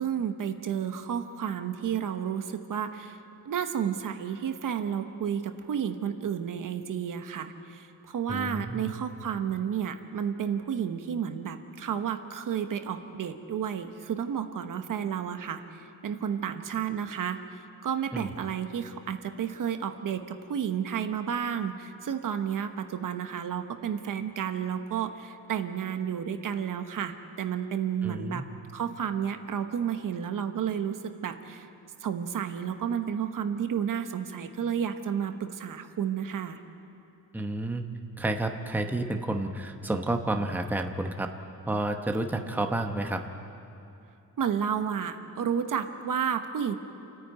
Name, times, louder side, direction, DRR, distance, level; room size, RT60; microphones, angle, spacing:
voice 1, 0.0-3.2 3.4-28.5 28.7-31.7 32.0-36.6 44.4-46.7, right 8 dB, 60° right, 8 dB, 1.1 m, -31 dB
voice 2, 8.3-9.0 18.1-18.3 28.0-28.4 37.3-37.8 38.2-41.3 41.7-43.2, right 2 dB, 5° right, 4 dB, 0.9 m, -30 dB
29.0 x 9.8 x 9.2 m, 2.8 s
wide cardioid pair, 145°, 36 cm